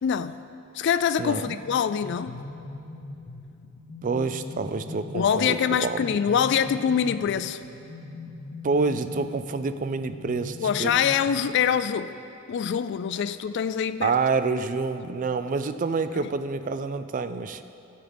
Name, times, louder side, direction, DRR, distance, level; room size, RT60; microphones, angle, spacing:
voice 1, 0.0-0.4 0.7-2.4 5.1-7.6 10.6-12.1 12.5-14.1 16.1-16.3, left 8 dB, 60° left, 12 dB, 0.3 m, -24 dB
voice 2, 1.2-1.6 4.0-6.1 8.6-11.0 14.0-17.6, right 4 dB, 40° right, 11 dB, 0.4 m, -27 dB
sound 1, 1.5-12.0, left 2 dB, 85° left, 0.8 m, -41 dB
14.0 x 8.7 x 3.5 m, 2.8 s
head